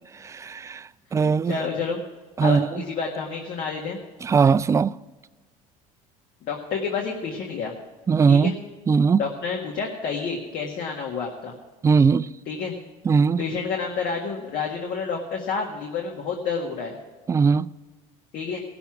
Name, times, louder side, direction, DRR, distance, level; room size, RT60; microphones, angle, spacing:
voice 1, 0.1-1.6 2.4-2.8 4.2-5.0 8.1-8.5 8.9-9.2 11.8-12.3 13.0-13.4 17.3-17.7, right 5 dB, 20° right, 0.3 m, -20 dB
voice 2, 1.2-2.0 2.4-4.0 6.5-7.7 8.3-8.6 9.2-11.5 12.5-12.7 13.4-17.0 18.3-18.6, left 5 dB, 60° left, 1.8 m, -29 dB
16.5 x 7.0 x 6.1 m
supercardioid pair, 100°, 16 cm